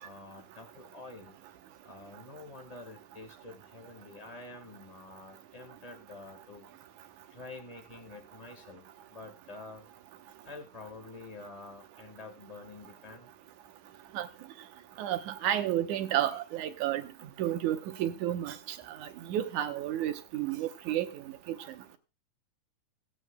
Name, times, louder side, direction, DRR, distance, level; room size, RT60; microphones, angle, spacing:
voice 1, 0.0-1.4 1.8-6.7 7.3-9.9 10.4-13.3, left 3 dB, 65° left, 0.3 m, -48 dB
voice 2, 15.0-17.0 17.4-18.6 19.3-21.1 21.5-21.6, right 12 dB, 75° right, 2.3 m, -31 dB
24.5 x 8.3 x 2.2 m
omnidirectional pair, 3.6 m